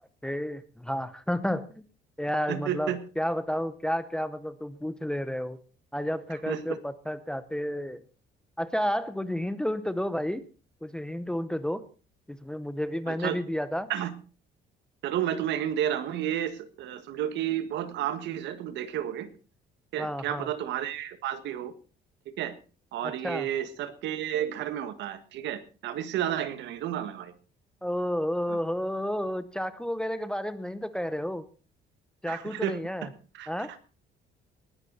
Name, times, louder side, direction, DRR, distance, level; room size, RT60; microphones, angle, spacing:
voice 1, 0.2-1.8 2.2-5.6 5.9-8.0 8.6-10.4 10.8-11.8 12.3-13.9 20.0-20.5 23.0-23.5 27.8-31.4 32.2-33.1 33.5-33.7, equal, 5° left, 13 dB, 0.6 m, -31 dB
voice 2, 2.5-3.0 6.5-6.6 13.1-13.3 13.9-14.1 15.0-19.3 19.9-21.7 22.2-22.5 22.9-27.3 28.5-28.6 32.3-33.1 33.3-33.5, right 10 dB, 70° right, 11 dB, 1.7 m, -31 dB
19.5 x 11.0 x 4.1 m, 0.36 s
cardioid pair, 175°, 19 cm